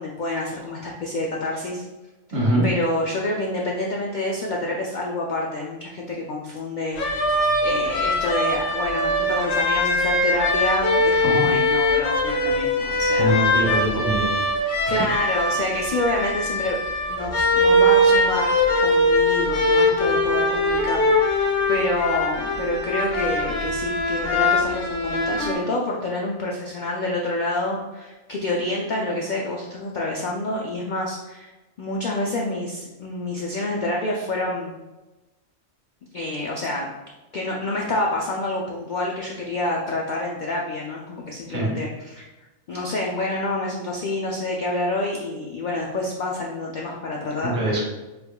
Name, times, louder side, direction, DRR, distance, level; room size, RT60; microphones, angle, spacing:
voice 1, 0.0-1.8 2.6-7.3 7.6-13.8 14.9-16.8 17.1-18.5 18.8-31.5 31.8-34.7 36.1-36.9 37.3-42.2 42.7-47.8, left 2 dB, 65° left, -1 dB, 0.4 m, -28 dB
voice 2, 2.3-2.7 11.1-11.4 13.2-14.4 14.9-15.0 41.5-41.7 47.4-47.8, right 1 dB, 60° right, -4 dB, 1.4 m, -23 dB
sound 1, 7.0-25.5, left 1 dB, 85° left, 1.1 m, -21 dB
4.5 x 3.4 x 2.2 m, 1.1 s
omnidirectional pair, 1.3 m